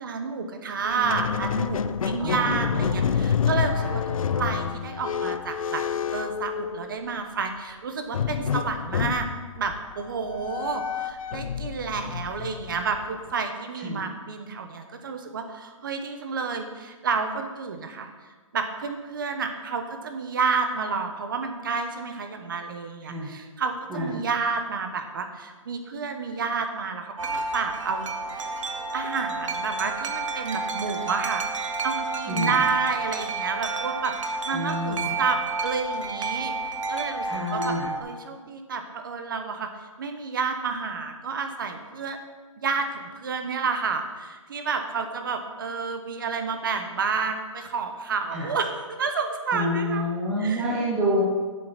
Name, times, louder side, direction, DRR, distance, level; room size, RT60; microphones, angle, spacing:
voice 1, 0.0-5.8 6.1-9.3 9.6-18.1 18.5-27.1 27.5-28.5 28.9-31.4 31.8-36.5 36.9-37.3 37.5-39.7 40.0-42.2 42.6-50.1 50.4-50.7, right 5 dB, 40° right, 6 dB, 1.0 m, -30 dB
Squeak, 0.8-7.2 8.1-13.3, left 7 dB, 90° left, 0.5 m, -28 dB
voice 2, 2.2-3.2 3.8-3.9 13.8-14.0 23.1-23.3 23.9-24.2 32.3-32.5 34.5-35.1 37.2-37.9 48.3-48.5 49.5-51.2, equal, 5° right, -5 dB, 0.5 m, -28 dB
Wind chime, 27.2-38.0, right 3 dB, 70° right, 1.1 m, -30 dB
7.7 x 7.6 x 5.8 m, 1.4 s
hypercardioid pair, 175°, 17 cm